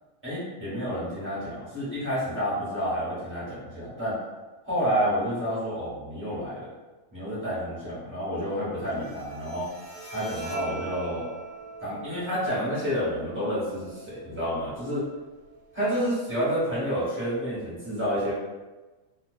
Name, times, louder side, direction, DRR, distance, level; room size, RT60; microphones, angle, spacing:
voice 1, 0.2-4.2 4.6-6.7 7.1-9.7 10.1-11.2 11.8-15.0 15.7-18.3, equal, 10° right, -11 dB, 1.2 m, -29 dB
Bowed string instrument, 8.8-15.9, right 3 dB, 80° right, 1.0 m, -43 dB
2.5 x 2.1 x 2.4 m, 1.2 s
omnidirectional pair, 1.5 m